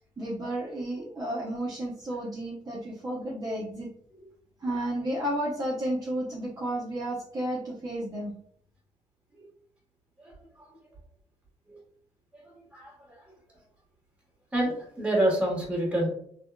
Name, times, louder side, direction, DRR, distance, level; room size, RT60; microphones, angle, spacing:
voice 1, 0.2-3.9 4.6-8.3, right 1 dB, 30° right, -6 dB, 0.7 m, -32 dB
voice 2, 10.2-10.7 11.7-11.8 12.3-13.3 14.5-16.1, right 1 dB, 10° right, -3 dB, 1.2 m, -29 dB
3.4 x 2.1 x 2.2 m, 0.64 s
cardioid pair, 105°, 12 cm